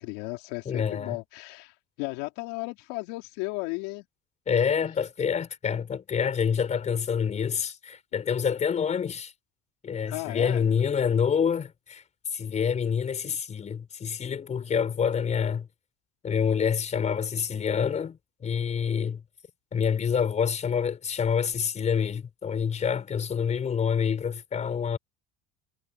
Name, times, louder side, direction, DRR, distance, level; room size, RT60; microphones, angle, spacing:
voice 1, 0.0-4.1 10.1-10.6, left 25 dB, 85° left, 4.1 m, -35 dB
voice 2, 0.6-1.2 4.5-9.3 9.8-12.0 12.3-15.7 16.2-19.2 19.7-25.0, left 7 dB, 35° left, 4.6 m, -27 dB
supercardioid pair, 105°, 20 cm